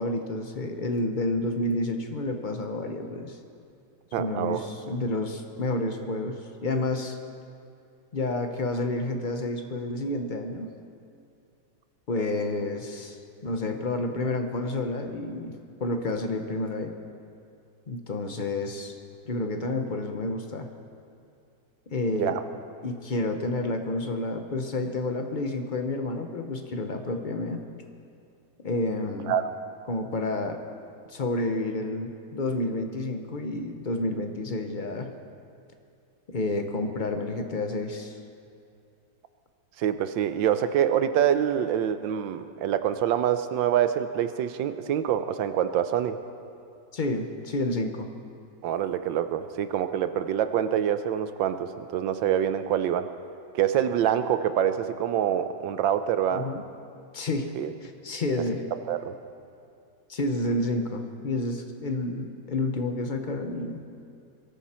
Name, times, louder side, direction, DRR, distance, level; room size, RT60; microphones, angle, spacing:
voice 1, 0.0-3.4 4.2-7.2 8.1-10.7 12.1-16.9 17.9-19.0 19.3-20.7 21.9-22.4 22.8-27.6 28.6-29.3 29.9-30.6 31.1-35.1 36.3-38.2 46.9-48.1 56.3-56.6 57.1-57.5 57.8-58.6 60.1-63.8, left 2 dB, 60° left, 5 dB, 0.5 m, -30 dB
voice 2, 4.1-4.7 22.2-22.4 29.3-29.4 39.8-46.2 48.6-53.1 53.5-56.5 57.5-57.7 58.9-59.2, right 10 dB, 75° right, 10 dB, 1.3 m, -26 dB
23.0 x 13.5 x 4.3 m, 2.6 s
omnidirectional pair, 2.2 m